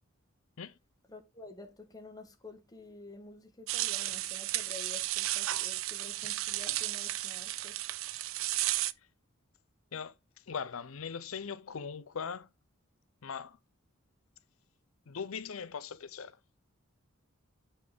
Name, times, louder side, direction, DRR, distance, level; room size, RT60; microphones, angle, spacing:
voice 1, 1.1-7.8, left 3 dB, 20° left, 1.2 m, -50 dB
sound 1, 3.7-8.9, right 15 dB, 65° right, 0.4 m, -33 dB
voice 2, 10.5-12.5 13.2-13.6 15.1-16.4, left 6 dB, 75° left, 0.6 m, -40 dB
8.0 x 5.3 x 3.6 m
head